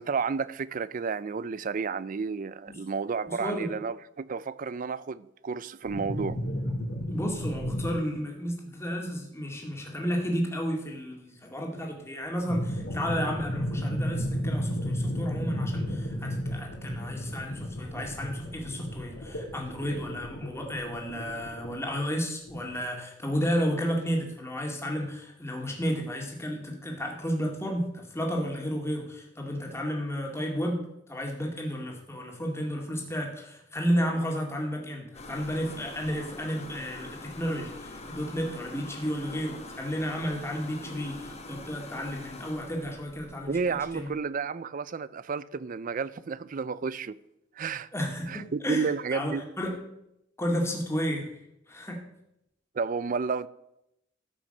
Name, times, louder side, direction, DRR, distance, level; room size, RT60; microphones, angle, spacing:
voice 1, 0.0-6.4 43.5-47.2 47.6-47.9 48.3-49.4 52.7-53.5, right 5 dB, 45° right, 0.4 m, -31 dB
voice 2, 3.3-3.7 7.1-30.8 31.1-43.5 43.9-44.1 47.9-49.8 50.4-51.3 51.7-52.0, equal, 15° left, 2.2 m, -32 dB
sound 1, 5.8-8.0 12.4-21.9 22.5-22.8, equal, 85° left, 3.2 m, -33 dB
sound 2, 35.1-44.1, left 2 dB, 35° left, 1.2 m, -44 dB
13.0 x 6.0 x 6.6 m
head